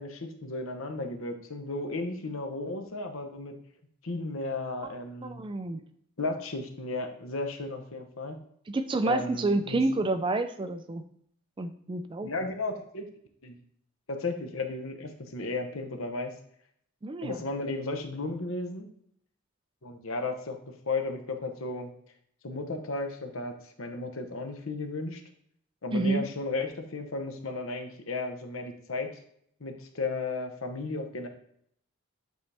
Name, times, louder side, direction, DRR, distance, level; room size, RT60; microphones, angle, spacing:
voice 1, 0.0-3.5 4.0-5.4 6.2-8.4 9.0-9.8 12.2-13.1 13.4-13.6 14.1-16.3 17.2-18.9 19.8-20.6 20.9-21.9 22.4-25.2 25.8-29.1 29.6-31.3, left 3 dB, 70° left, 5 dB, 1.0 m, -34 dB
voice 2, 5.2-5.8 8.7-11.0 11.6-12.3 17.0-17.4 25.9-26.3, right 2 dB, 25° right, 10 dB, 0.3 m, -29 dB
8.3 x 4.1 x 3.4 m, 0.68 s
head